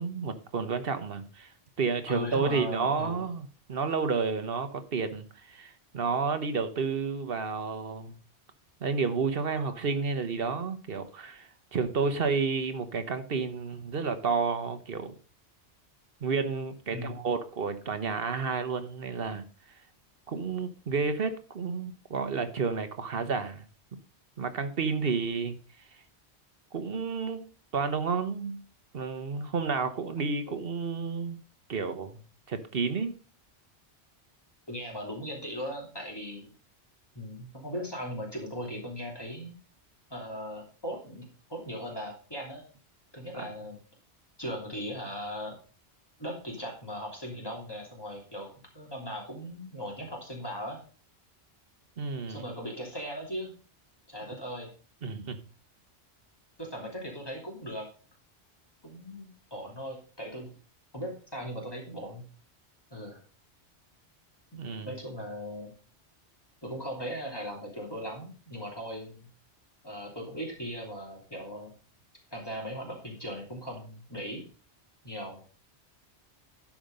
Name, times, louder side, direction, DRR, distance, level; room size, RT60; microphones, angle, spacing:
voice 1, 0.0-1.5 1.8-8.1 8.8-15.1 16.2-19.4 20.3-23.6 24.4-25.6 26.7-27.4 27.7-28.6 28.9-31.4 31.7-32.2 32.5-33.1 52.0-52.4 55.0-55.4 64.6-64.9, right 5 dB, 55° right, 10 dB, 1.2 m, -31 dB
voice 2, 2.1-3.3 9.5-9.9 16.9-17.2 30.5-30.6 34.7-36.5 37.1-39.5 40.1-42.6 43.1-43.8 44.4-45.6 46.2-48.5 48.7-50.8 52.3-53.5 54.1-54.7 56.6-57.9 58.8-60.5 60.9-62.2 62.9-63.2 64.8-65.7 66.6-69.3 69.8-71.7 72.3-74.4 75.0-75.4, equal, 20° left, -2 dB, 2.9 m, -38 dB
12.0 x 5.2 x 5.3 m, 0.38 s
omnidirectional pair, 1.1 m